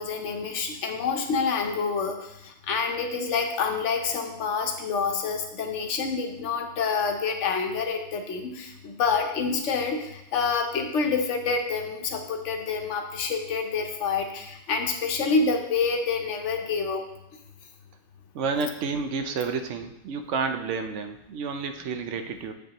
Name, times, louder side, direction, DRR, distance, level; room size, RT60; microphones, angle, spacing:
voice 1, 0.0-17.0, left 5 dB, 90° left, 4 dB, 1.1 m, -27 dB
voice 2, 18.3-22.5, right 5 dB, 90° right, 7 dB, 1.0 m, -30 dB
7.7 x 5.4 x 2.9 m, 0.85 s
omnidirectional pair, 1.2 m